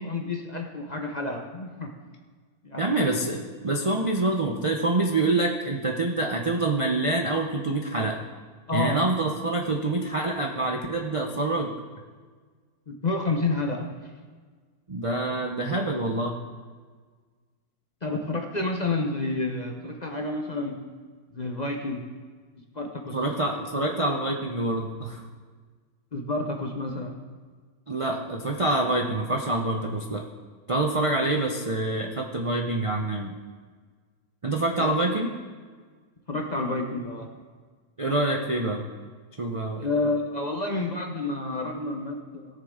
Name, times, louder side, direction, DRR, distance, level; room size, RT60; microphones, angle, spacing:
voice 1, 0.0-1.9 2.6-3.1 8.7-9.1 12.9-13.9 18.0-20.8 21.3-22.0 22.7-23.2 26.1-27.1 34.8-34.9 36.3-37.3 39.8-42.5, left 2 dB, 35° left, 2 dB, 0.8 m, -29 dB
voice 2, 2.8-8.2 8.7-11.7 14.9-16.3 23.1-25.2 27.9-30.3 30.7-33.3 34.4-35.3 38.0-38.9 39.4-39.9, right 2 dB, 40° right, 2 dB, 0.5 m, -26 dB
18.0 x 6.8 x 3.7 m, 1.5 s
omnidirectional pair, 1.6 m